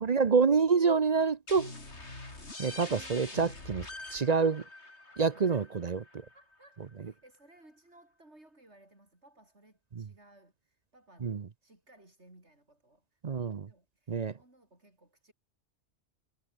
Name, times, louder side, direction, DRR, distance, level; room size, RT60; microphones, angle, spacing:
voice 1, 0.0-1.7 2.6-3.9 4.1-4.6 5.2-6.0 11.2-11.4 13.2-13.7 14.1-14.3, right 5 dB, 40° right, 0.8 m, -27 dB
sound 1, 1.5-6.9, left 2 dB, 70° left, 4.8 m, -45 dB
voice 2, 5.3-5.8 6.3-13.2 13.7-15.3, right 1 dB, 70° right, 7.1 m, -60 dB
omnidirectional pair, 1.2 m